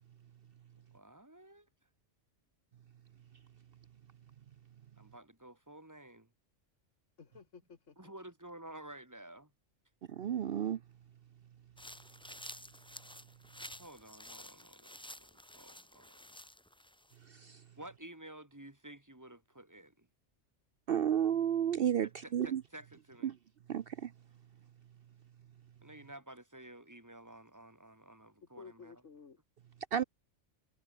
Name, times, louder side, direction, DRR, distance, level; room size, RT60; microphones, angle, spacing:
voice 1, 0.9-1.7 5.0-6.3 8.0-9.5 13.8-16.2 17.8-20.1 22.2-23.3 25.8-28.9, right 1 dB, 15° right, 2.2 m, -52 dB
voice 2, 7.2-8.1 28.4-29.4, left 5 dB, 80° left, 2.1 m, -54 dB
voice 3, 10.1-10.8 17.2-17.6 20.9-22.6 23.2-23.4 23.7-24.1 29.9-30.0, right 9 dB, 60° right, 0.8 m, -32 dB
sound 1, 11.8-17.2, left 1 dB, 5° left, 0.8 m, -51 dB
omnidirectional pair, 1.3 m